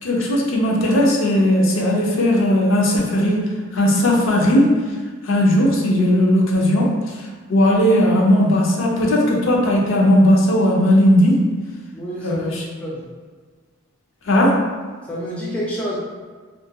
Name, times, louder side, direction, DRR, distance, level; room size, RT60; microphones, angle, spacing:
voice 1, 0.0-3.4 3.7-4.8 5.2-7.0 7.5-11.4 12.2-12.6 14.3-14.6, left 1 dB, 65° left, -2 dB, 0.5 m, -17 dB
voice 2, 11.9-12.5 12.8-13.0 15.1-16.0, equal, 5° left, -6 dB, 0.3 m, -28 dB
2.3 x 2.2 x 2.7 m, 1.5 s
head